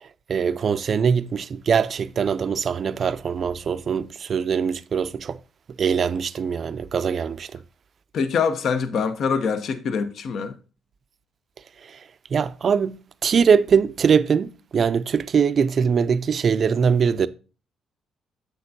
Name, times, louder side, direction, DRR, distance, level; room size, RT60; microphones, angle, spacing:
voice 1, 0.3-5.4 5.8-7.6 11.9-12.0 12.3-17.3, right 6 dB, 50° right, 0.4 m, -22 dB
voice 2, 8.1-10.5, left 5 dB, 65° left, 0.7 m, -24 dB
7.8 x 6.4 x 2.6 m
cardioid pair, 90°, 0 cm